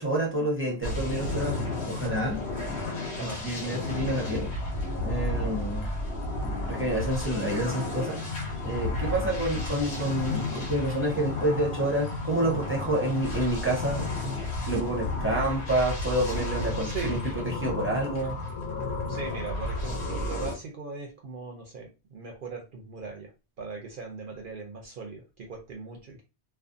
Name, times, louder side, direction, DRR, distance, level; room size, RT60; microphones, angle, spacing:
voice 1, 0.0-2.4 3.2-4.5 5.0-5.9 6.7-8.2 8.6-14.1 14.7-17.2 17.6-18.4, right 1 dB, 15° right, 0.5 m, -28 dB
sound 1, 0.8-20.5, left 2 dB, 80° left, 1.1 m, -32 dB
voice 2, 16.8-17.2 19.1-23.3 23.6-26.2, right 4 dB, 60° right, 0.6 m, -39 dB
2.5 x 2.3 x 2.5 m
omnidirectional pair, 1.1 m